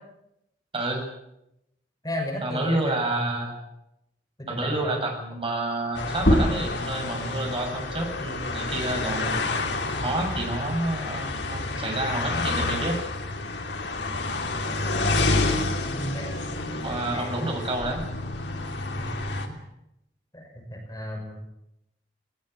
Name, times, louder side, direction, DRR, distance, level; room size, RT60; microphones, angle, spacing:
voice 1, 0.7-1.0 2.4-3.6 4.5-9.4 10.0-13.0 16.8-18.0, right 2 dB, 30° right, 2 dB, 6.9 m, -29 dB
voice 2, 2.0-3.5 4.4-5.0 16.1-16.4 17.1-17.5 19.0-19.1 19.4-19.6 20.3-21.4, left 1 dB, 20° left, 1 dB, 6.5 m, -34 dB
sound 1, 5.9-19.5, left 2 dB, 75° left, 3.1 m, -29 dB
sound 2, 6.2-11.4 11.8-13.6, equal, 55° left, 5.8 m, -30 dB
20.5 x 20.0 x 9.2 m, 0.85 s
head